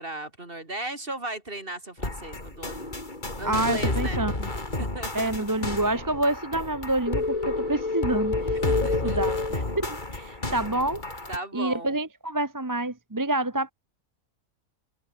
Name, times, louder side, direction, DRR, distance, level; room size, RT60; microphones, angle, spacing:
voice 1, 0.0-2.9 3.4-4.2 4.8-5.3 8.6-9.2 10.4-10.5 11.3-12.0, right 2 dB, 40° right, 4.6 m, -36 dB
sound 1, 2.0-11.4, left 2 dB, 30° left, 3.8 m, -32 dB
voice 2, 3.4-4.5 5.1-8.6 9.0-11.0 11.5-13.7, right 1 dB, 15° right, 1.0 m, -28 dB
sound 2, 7.1-10.2, left 3 dB, 70° left, 3.8 m, -28 dB
omnidirectional pair, 1.5 m